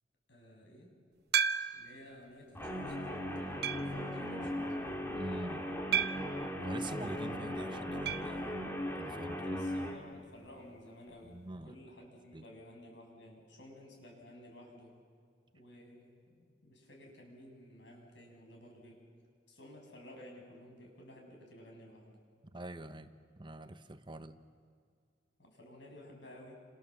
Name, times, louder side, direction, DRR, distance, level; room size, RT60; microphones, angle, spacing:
voice 1, 0.3-0.9 1.7-4.6 9.4-15.0 15.5-19.1 19.5-22.2 25.4-26.5, left 1 dB, 85° left, 2 dB, 6.9 m, -54 dB
sound 1, 1.3-2.0 2.6-2.7 3.6-4.0 5.9-6.4 8.1-8.4 8.6-8.7 9.0-9.1 11.1-11.2, right 7 dB, 65° right, 0.9 m, -32 dB
Guitar, 2.5-10.0, left 1 dB, 15° left, 3.0 m, -38 dB
voice 2, 5.1-5.7 6.6-9.5 11.3-11.7 12.3-12.4 22.5-24.4, right 2 dB, 25° right, 10 dB, 1.0 m, -45 dB
29.5 x 27.0 x 7.3 m, 2.1 s
head